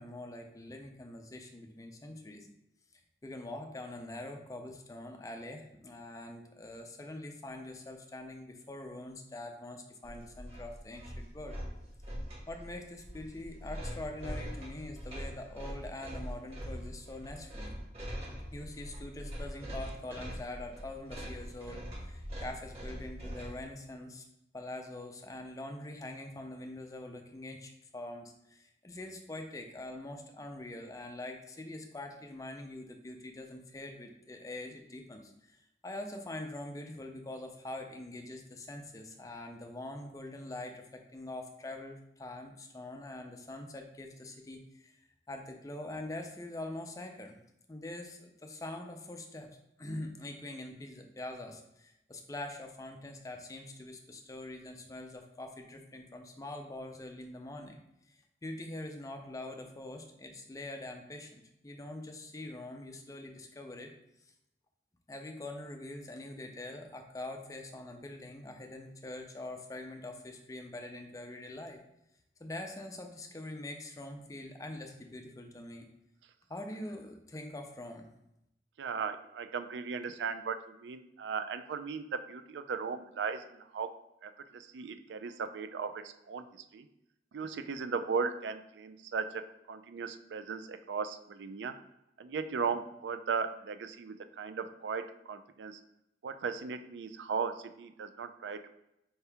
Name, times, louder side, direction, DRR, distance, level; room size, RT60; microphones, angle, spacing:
voice 1, 0.0-2.5 3.2-11.6 12.5-17.7 18.5-24.2 24.5-44.9 45.3-47.4 47.7-49.5 49.8-57.8 58.1-63.9 65.1-71.8 72.4-75.9 76.5-78.1, left 1 dB, 20° left, 4 dB, 0.4 m, -44 dB
sound 1, 10.0-23.6, equal, 35° right, 1.3 m, -42 dB
voice 2, 78.8-83.9 84.2-86.9 87.3-89.4 89.7-91.7 92.2-95.8 96.2-98.6, right 5 dB, 85° right, 9 dB, 0.4 m, -37 dB
4.5 x 2.8 x 3.4 m, 0.83 s
head